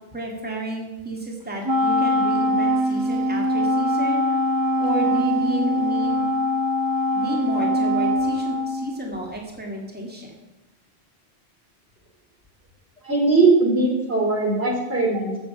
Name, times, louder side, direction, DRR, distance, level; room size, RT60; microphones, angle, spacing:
voice 1, 0.1-4.4 4.8-6.3 7.1-10.4, right 1 dB, 10° right, -1 dB, 2.0 m, -31 dB
Wind instrument woodwind instrument, 1.6-9.3, equal, 25° right, 0.5 m, -22 dB
voice 2, 13.0-15.4, right 3 dB, 70° right, -1 dB, 3.3 m, -20 dB
15.0 x 6.9 x 5.8 m, 1.1 s
omnidirectional pair, 1.1 m